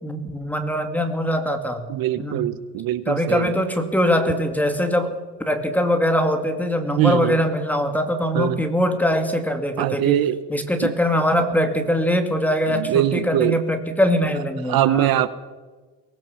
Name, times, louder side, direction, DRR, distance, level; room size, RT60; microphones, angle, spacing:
voice 1, 0.0-1.9 2.2-2.5 3.1-5.2 5.5-10.2 10.5-15.1, equal, 5° left, 5 dB, 2.3 m, -22 dB
voice 2, 1.9-3.5 7.0-7.4 8.3-8.6 9.8-10.4 10.8-10.9 12.7-13.6 14.7-15.3, right 12 dB, 60° right, 14 dB, 1.0 m, -22 dB
23.0 x 18.5 x 7.1 m, 1.3 s
cardioid pair, 150°, 41 cm